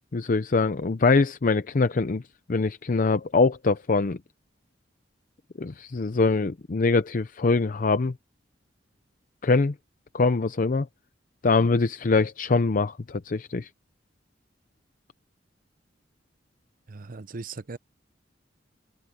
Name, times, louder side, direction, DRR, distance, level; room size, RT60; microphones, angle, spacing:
voice 1, 0.1-2.2 2.5-4.2 5.6-8.2 9.4-9.7 10.1-10.9 11.4-13.7, left 3 dB, 45° left, 0.6 m, -23 dB
voice 2, 16.9-17.8, right 3 dB, 50° right, 0.7 m, -38 dB
head